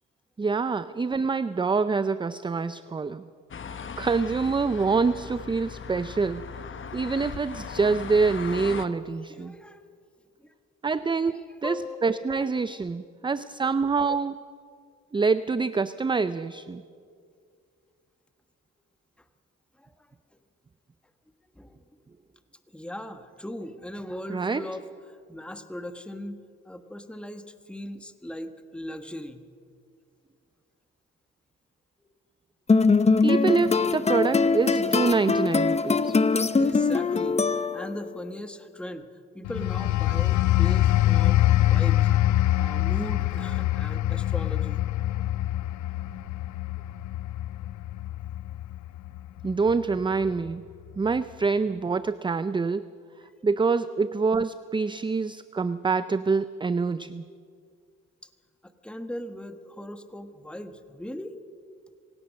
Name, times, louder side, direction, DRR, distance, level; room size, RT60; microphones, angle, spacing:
voice 1, 0.4-3.3 4.0-6.5 6.9-9.5 10.8-14.4 15.1-16.8 24.3-24.6 33.2-36.1 49.4-50.6 51.0-52.9 53.4-57.2, right 4 dB, 15° right, 14 dB, 0.5 m, -26 dB
sound 1, 3.5-8.9, left 6 dB, 40° left, 1.2 m, -38 dB
voice 2, 9.3-9.8 10.4-10.5 11.1-12.8 19.8-20.1 21.5-21.8 22.7-29.4 36.5-39.1 39.3-42.1 42.5-44.8 53.2-53.5 58.6-61.4, left 1 dB, 5° left, 8 dB, 1.3 m, -39 dB
sound 2, 32.7-38.1, left 4 dB, 20° left, 0.7 m, -22 dB
sound 3, 39.4-49.8 50.2-50.5, left 14 dB, 75° left, 0.6 m, -24 dB
26.0 x 17.0 x 6.4 m, 2.2 s
cardioid pair, 90°, 30 cm